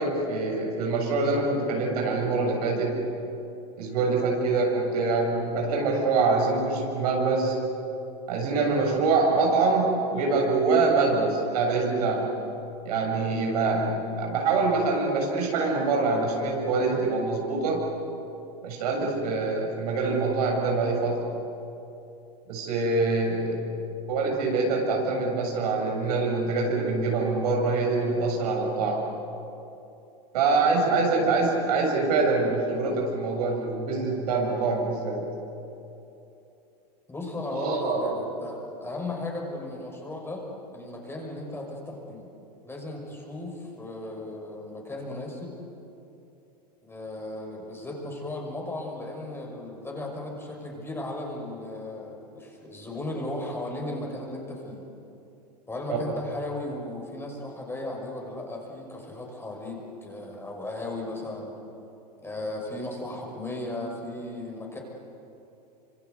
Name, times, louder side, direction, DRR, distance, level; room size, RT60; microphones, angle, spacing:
voice 1, 0.0-3.0 3.8-7.5 8.3-12.3 12.8-17.9 18.6-21.3 22.5-23.6 24.1-29.1 30.3-35.3 37.5-38.2 55.9-56.0, right 3 dB, 70° right, 0 dB, 7.2 m, -25 dB
voice 2, 37.1-42.3 42.6-45.6 46.8-54.8 55.7-61.5 62.2-64.8, left 2 dB, 10° left, 0 dB, 5.9 m, -36 dB
28.0 x 26.0 x 8.1 m, 2.9 s
hypercardioid pair, 105°, 21 cm